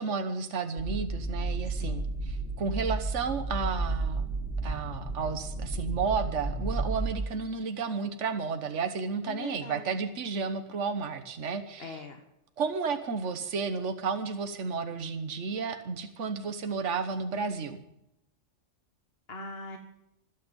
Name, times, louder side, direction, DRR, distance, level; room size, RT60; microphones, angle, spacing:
voice 1, 0.0-4.3 4.6-12.0 12.6-17.8, right 5 dB, 70° right, 8 dB, 1.5 m, -32 dB
sound 1, 0.8-7.1, right 3 dB, 5° left, 3.9 m, -32 dB
voice 2, 1.8-2.1 9.3-9.9 11.8-12.2 19.3-19.8, left 3 dB, 50° left, 4 dB, 1.8 m, -41 dB
25.0 x 9.4 x 5.4 m, 0.82 s
omnidirectional pair, 1.3 m